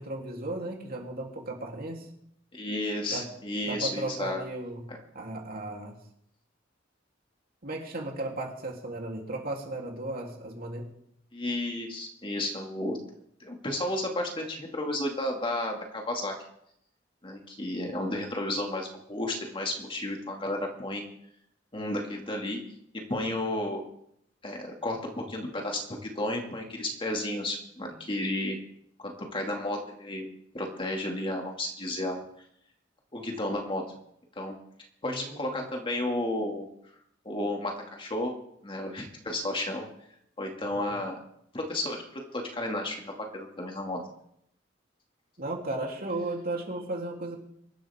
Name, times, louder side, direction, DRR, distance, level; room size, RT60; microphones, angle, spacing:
voice 1, 0.0-2.1 3.1-3.3 3.7-6.0 7.6-11.0 35.0-35.6 40.6-41.0 45.4-47.4, right 2 dB, 50° right, 0 dB, 3.2 m, -35 dB
voice 2, 2.5-4.4 4.9-5.0 11.3-13.0 13.4-16.3 17.2-21.0 21.7-22.6 23.1-23.9 24.4-28.6 29.0-30.2 30.5-32.2 33.1-33.8 34.4-34.6 35.0-36.7 37.2-38.3 38.6-39.9 40.4-41.2 41.5-44.0, left 1 dB, 25° left, 1 dB, 2.3 m, -32 dB
24.0 x 12.5 x 3.6 m, 0.72 s
head